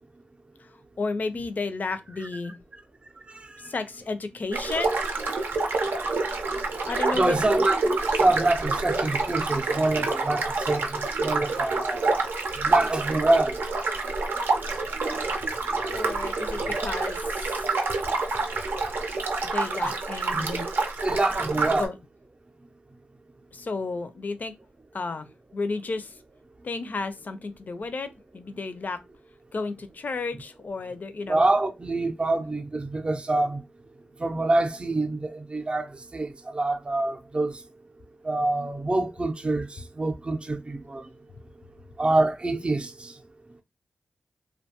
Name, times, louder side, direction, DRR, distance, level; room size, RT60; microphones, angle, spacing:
voice 1, 0.6-2.6 3.6-5.0 6.9-7.4 15.9-17.7 19.5-20.7 21.8-22.0 23.5-24.5 24.9-26.2 26.6-29.0 29.5-31.4, left 3 dB, 55° left, 0.4 m, -32 dB
sound 1, 4.5-21.9, right 3 dB, 75° right, 0.5 m, -27 dB
voice 2, 7.1-12.2 12.6-13.6 20.3-20.5 21.0-21.8 31.3-33.6 34.2-35.9 36.1-37.6 38.2-39.7 40.0-41.1 42.0-43.1, right 2 dB, 30° right, 0.5 m, -25 dB
2.5 x 2.2 x 2.8 m
cardioid pair, 55°, 4 cm